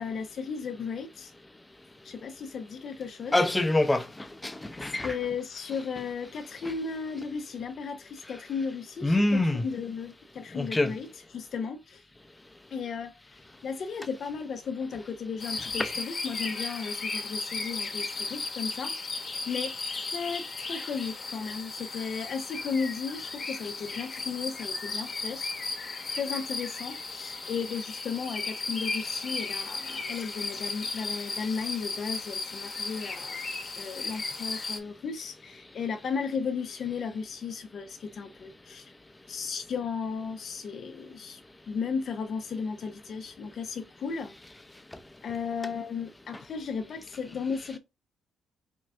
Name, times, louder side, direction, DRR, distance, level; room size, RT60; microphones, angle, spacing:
voice 1, 0.0-1.3 2.0-3.4 5.0-12.0 12.7-25.5 26.1-33.4 33.7-38.9 39.3-41.4 41.7-44.3 45.2-47.8, left 5 dB, 55° left, 0.5 m, -35 dB
voice 2, 3.3-4.1 4.4-5.1 9.0-9.6 10.5-10.9, left 1 dB, 15° left, 0.6 m, -25 dB
sound 1, 15.4-34.8, left 3 dB, 40° left, 0.9 m, -35 dB
4.4 x 2.4 x 3.2 m
cardioid pair, 90°, 0 cm